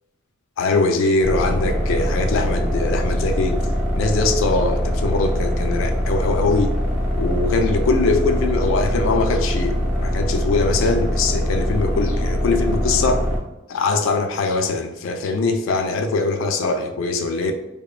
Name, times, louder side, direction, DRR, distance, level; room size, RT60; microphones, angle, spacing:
voice 1, 0.6-3.6 3.9-6.7 7.2-13.2 13.7-17.5, left 3 dB, 75° left, 6 dB, 0.3 m, -22 dB
sound 1, 1.2-13.4, equal, 5° right, 0.4 m, -22 dB
2.9 x 2.1 x 2.3 m, 0.96 s
head